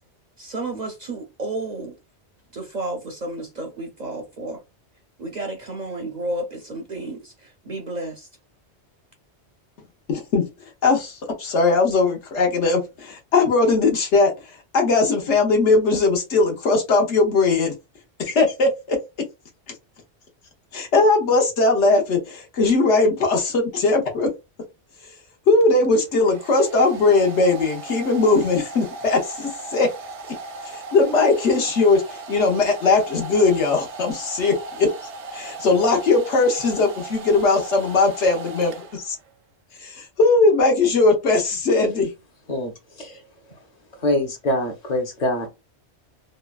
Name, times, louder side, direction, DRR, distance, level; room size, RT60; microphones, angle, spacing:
voice 1, 0.4-1.9 2.5-4.6 5.2-8.3, right 2 dB, 50° right, 0.5 m, -31 dB
voice 2, 10.1-17.7 18.2-19.0 20.7-24.3 25.5-29.9 30.6-34.9 35.3-39.1 39.8-42.1, left 3 dB, 80° left, 1.2 m, -19 dB
Domestic sounds home sounds, 25.6-39.3, right 3 dB, 80° right, 0.9 m, -37 dB
voice 3, 44.0-45.5, left 1 dB, 40° left, 0.7 m, -24 dB
3.0 x 2.2 x 2.3 m
omnidirectional pair, 1.2 m